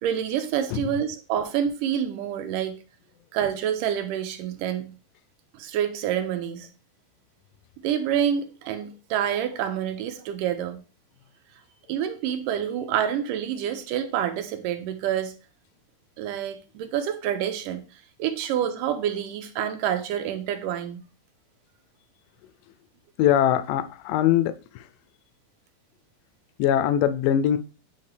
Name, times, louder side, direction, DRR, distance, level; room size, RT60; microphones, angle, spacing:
voice 1, 0.0-2.8 3.3-4.9 5.5-6.7 7.8-10.8 11.9-15.4 16.2-17.8 18.2-21.0, right 9 dB, 80° right, 2.3 m, -27 dB
voice 2, 23.2-24.9 26.6-27.6, left 10 dB, 80° left, 2.1 m, -22 dB
8.7 x 3.6 x 3.3 m
omnidirectional pair, 3.8 m